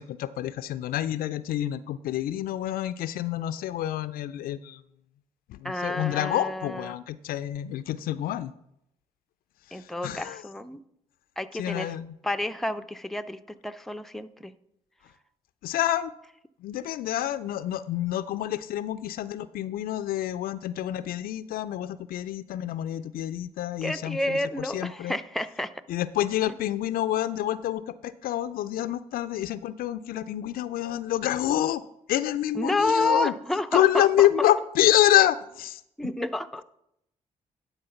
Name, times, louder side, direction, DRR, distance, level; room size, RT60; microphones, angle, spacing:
voice 1, 0.0-4.8 5.5-8.5 9.7-10.4 11.5-12.1 15.6-16.1 16.6-25.2 25.9-31.8 32.1-33.3 33.7-35.8, left 13 dB, 65° left, 13 dB, 0.4 m, -27 dB
voice 2, 5.6-6.9 9.7-10.8 11.4-11.9 12.2-14.5 23.8-25.7 32.5-34.5 36.0-36.6, left 1 dB, ahead, 10 dB, 0.5 m, -29 dB
11.0 x 4.2 x 5.6 m, 0.78 s
hypercardioid pair, 45°, 16 cm